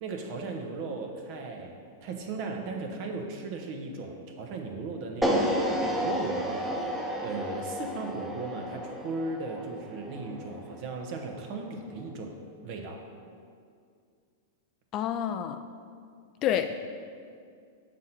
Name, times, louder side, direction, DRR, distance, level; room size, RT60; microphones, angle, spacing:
voice 1, 0.0-1.7 2.0-12.4 12.6-13.0, right 3 dB, 50° right, 2 dB, 0.9 m, -37 dB
sound 1, 5.2-11.4, equal, 5° right, 0.9 m, -31 dB
voice 2, 14.9-15.6 16.4-16.8, left 10 dB, 40° left, 8 dB, 0.3 m, -28 dB
6.3 x 4.2 x 5.9 m, 2.3 s
hypercardioid pair, 100°, 0 cm